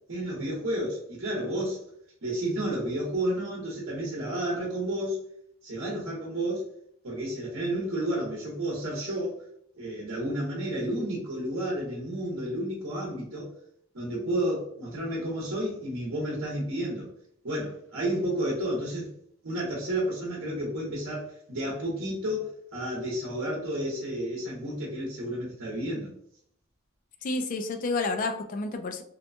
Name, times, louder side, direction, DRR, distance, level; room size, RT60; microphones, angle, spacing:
voice 1, 0.1-1.8 2.2-5.2 5.6-6.7 7.0-9.4 9.8-13.5 13.9-17.1 17.4-19.1 19.4-26.1, right 1 dB, 65° right, -4 dB, 0.9 m, -31 dB
voice 2, 27.2-29.0, left 3 dB, 40° left, 5 dB, 0.3 m, -30 dB
2.8 x 2.2 x 2.6 m, 0.67 s
head